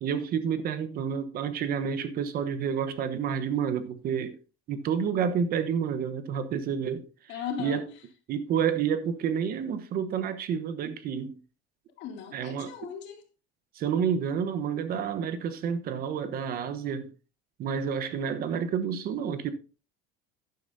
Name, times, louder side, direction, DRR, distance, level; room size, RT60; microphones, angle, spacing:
voice 1, 0.0-4.4 4.7-7.0 7.6-7.8 8.3-11.4 12.3-12.7 13.7-17.1 17.6-19.5, right 7 dB, 45° right, 1.1 m, -29 dB
voice 2, 7.3-7.8 12.0-13.2, left 7 dB, 60° left, 2.6 m, -37 dB
12.0 x 10.5 x 2.7 m
cardioid pair, 140°, 21 cm